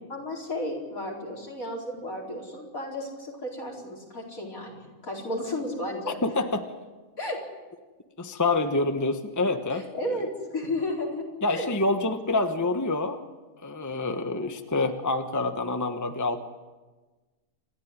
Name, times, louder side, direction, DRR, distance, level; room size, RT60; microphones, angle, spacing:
voice 1, 0.1-6.2 7.2-7.4 9.7-11.2 11.5-11.7, left 1 dB, 65° left, -1 dB, 5.0 m, -33 dB
voice 2, 6.2-6.6 8.2-9.9 11.4-13.2 13.6-16.4, left 2 dB, 15° left, 7 dB, 1.1 m, -27 dB
28.5 x 13.5 x 9.6 m, 1.3 s
omnidirectional pair, 1.5 m